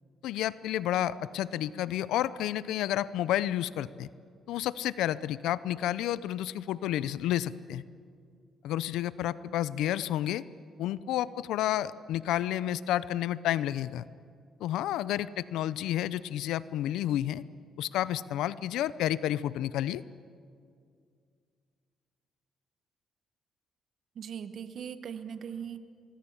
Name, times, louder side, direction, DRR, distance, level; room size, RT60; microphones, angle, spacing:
voice 1, 0.2-4.1 4.5-7.8 8.6-10.4 10.8-14.0 14.6-17.4 17.8-20.0, left 12 dB, 90° left, 17 dB, 0.5 m, -30 dB
voice 2, 24.1-25.8, right 8 dB, 60° right, 11 dB, 1.1 m, -39 dB
24.0 x 21.5 x 7.2 m, 2.3 s
cardioid pair, 90°, 0 cm